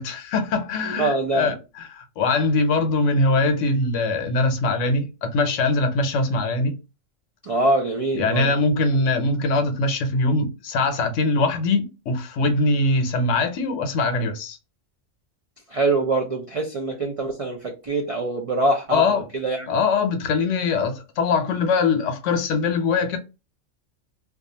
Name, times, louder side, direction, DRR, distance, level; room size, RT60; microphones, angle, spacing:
voice 1, 0.0-6.8 8.1-14.6 18.9-19.2 19.7-23.2, left 3 dB, 80° left, 1.0 m, -22 dB
voice 2, 0.9-1.5 7.5-8.5 15.7-19.8, right 2 dB, 65° right, 0.3 m, -24 dB
2.4 x 2.3 x 2.7 m
omnidirectional pair, 1.3 m